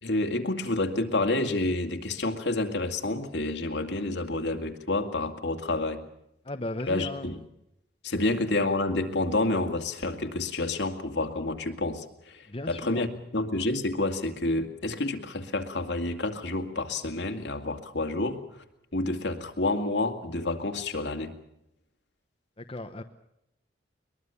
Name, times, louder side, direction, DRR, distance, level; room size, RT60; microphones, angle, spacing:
voice 1, 0.0-6.0 6.9-7.4 8.0-18.4 18.9-21.3, left 2 dB, 70° left, 6 dB, 2.3 m, -29 dB
voice 2, 6.4-7.3 12.5-13.1 22.6-23.0, left 1 dB, 30° left, 5 dB, 1.1 m, -36 dB
22.5 x 21.5 x 7.1 m, 0.81 s
head